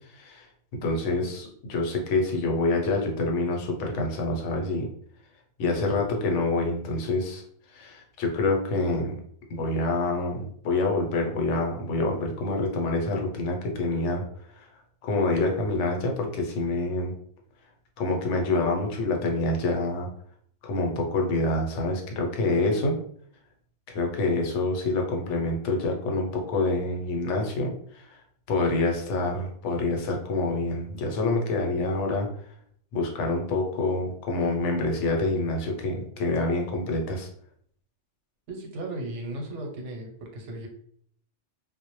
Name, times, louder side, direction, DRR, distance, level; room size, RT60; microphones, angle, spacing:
voice 1, 0.1-0.5 0.8-4.9 5.6-7.4 7.7-9.1 9.5-14.2 14.6-14.7 15.0-17.1 18.0-20.1 20.6-22.9 23.9-28.2 28.5-32.3 32.9-37.3, left 2 dB, 85° left, 1 dB, 0.9 m, -27 dB
voice 2, 38.5-40.7, right 1 dB, 85° right, 2 dB, 0.9 m, -36 dB
2.1 x 2.0 x 2.9 m, 0.62 s
omnidirectional pair, 1.2 m